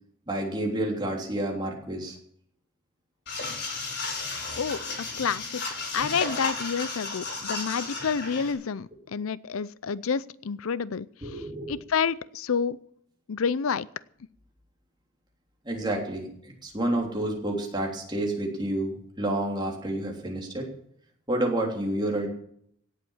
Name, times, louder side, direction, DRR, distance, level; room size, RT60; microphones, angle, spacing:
voice 1, 0.3-2.2 11.2-11.7 15.6-20.7 21.3-22.3, right 1 dB, 20° right, 0 dB, 3.3 m, -29 dB
sound 1, 3.3-8.5, left 3 dB, 50° left, 5.1 m, -33 dB
voice 2, 4.6-5.6 5.9-11.1 11.3-11.4 11.7-12.8 13.3-13.9, left 6 dB, 80° left, 19 dB, 0.5 m, -29 dB
17.5 x 8.1 x 7.2 m, 0.66 s
head